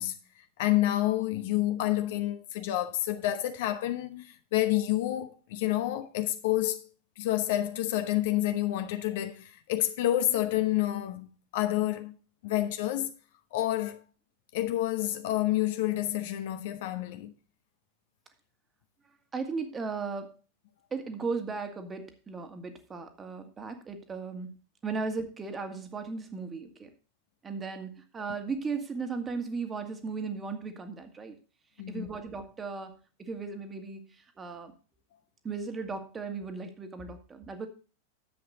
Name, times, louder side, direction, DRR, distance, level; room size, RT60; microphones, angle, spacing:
voice 1, 0.0-6.9 7.2-12.1 12.4-13.1 13.5-14.0 14.5-17.3 31.8-32.1, left 14 dB, 50° left, 1.0 m, -29 dB
voice 2, 19.3-20.4 20.9-24.6 24.8-26.9 27.4-31.4 31.9-34.7 35.4-37.7, right 4 dB, 20° right, 1.8 m, -36 dB
10.5 x 7.8 x 4.0 m
figure-of-eight pair, 90°, 0 cm